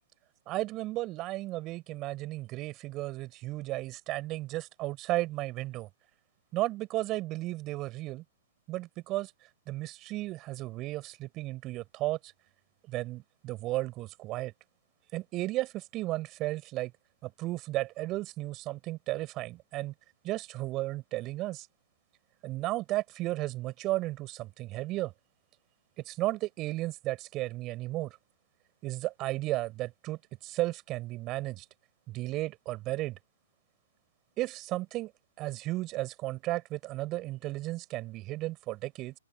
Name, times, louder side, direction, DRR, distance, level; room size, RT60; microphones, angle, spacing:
voice 1, 0.5-5.9 6.5-8.2 8.7-9.3 9.7-12.3 12.9-14.5 15.1-16.9 17.2-19.9 20.2-21.7 22.4-25.1 26.0-28.2 28.8-31.6 32.1-33.2 34.4-35.1 35.4-39.1, right 18 dB, 30° right, 5.6 m, -34 dB
open air
figure-of-eight pair, 120°, 0 cm